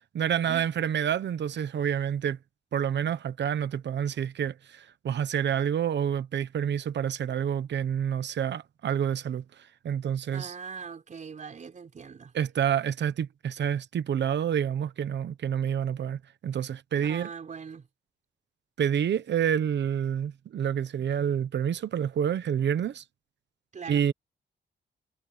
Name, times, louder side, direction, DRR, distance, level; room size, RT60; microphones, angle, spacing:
voice 1, 0.1-2.4 2.7-10.5 12.3-17.3 18.8-23.0 23.9-24.1, right 9 dB, 70° right, 1.0 m, -28 dB
voice 2, 10.3-12.3 17.0-17.9 23.7-24.1, right 6 dB, 40° right, 4.5 m, -41 dB
wide cardioid pair, 175°, 19 cm